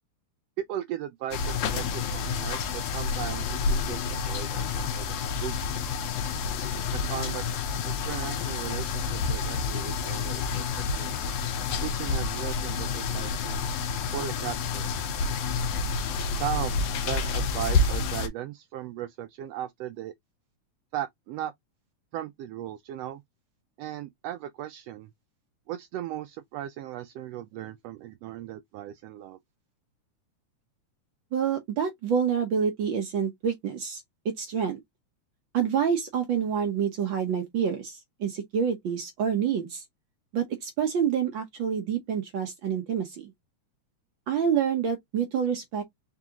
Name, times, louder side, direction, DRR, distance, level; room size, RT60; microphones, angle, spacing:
voice 1, 0.6-5.8 6.9-7.4 7.8-11.1 11.8-13.6 14.1-14.8 16.3-20.1 20.9-21.5 22.1-23.2 23.8-25.1 25.7-29.4, right 12 dB, 85° right, 1.4 m, -37 dB
sound 1, 1.3-18.3, left 4 dB, 70° left, 1.8 m, -29 dB
voice 2, 31.3-34.8 35.5-39.8 40.3-43.3 44.3-45.8, right 7 dB, 70° right, 1.1 m, -27 dB
4.8 x 3.7 x 2.8 m
omnidirectional pair, 3.4 m